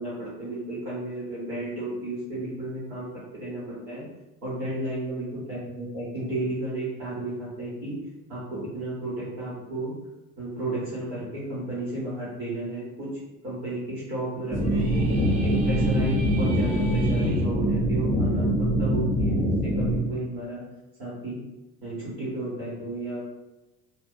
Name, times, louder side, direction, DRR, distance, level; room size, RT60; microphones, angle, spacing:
voice 1, 0.0-4.0 4.4-7.9 8.3-9.9 10.4-13.1 13.4-15.1 15.4-20.6 21.0-21.4 21.8-23.2, right 2 dB, 80° right, -9 dB, 1.3 m, -33 dB
sound 1, 14.5-20.0, equal, 5° left, 0.6 m, -23 dB
sound 2, 14.5-17.4, right 2 dB, 35° right, 0.8 m, -43 dB
2.5 x 2.3 x 3.7 m, 1.0 s
figure-of-eight pair, 60°, 47 cm